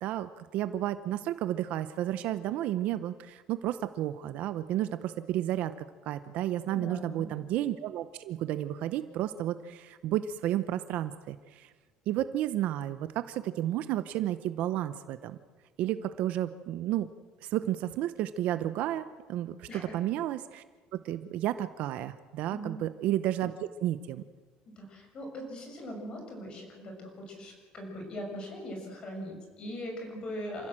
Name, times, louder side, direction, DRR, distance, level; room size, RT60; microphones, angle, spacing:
voice 1, 0.0-5.7 6.0-11.7 12.1-15.4 15.8-17.1 17.4-20.6 20.9-24.2, right 12 dB, 55° right, 12 dB, 0.8 m, -32 dB
voice 2, 6.7-7.4 19.7-19.9 22.5-22.8 24.6-30.7, equal, 30° left, 2 dB, 6.4 m, -40 dB
28.0 x 15.5 x 7.6 m, 1.5 s
cardioid pair, 165°, 3 cm